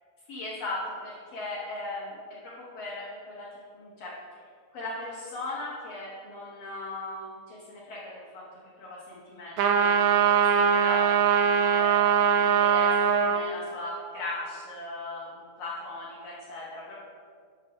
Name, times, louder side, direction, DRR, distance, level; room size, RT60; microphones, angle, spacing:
voice 1, 0.3-2.2 2.4-3.5 3.7-4.2 4.7-8.4 8.8-12.0 12.4-16.9, left 2 dB, 60° left, -6 dB, 1.9 m, -38 dB
sound 1, 9.6-13.4, right 7 dB, 85° right, 1.6 m, -22 dB
8.8 x 3.6 x 6.8 m, 2.2 s
omnidirectional pair, 3.9 m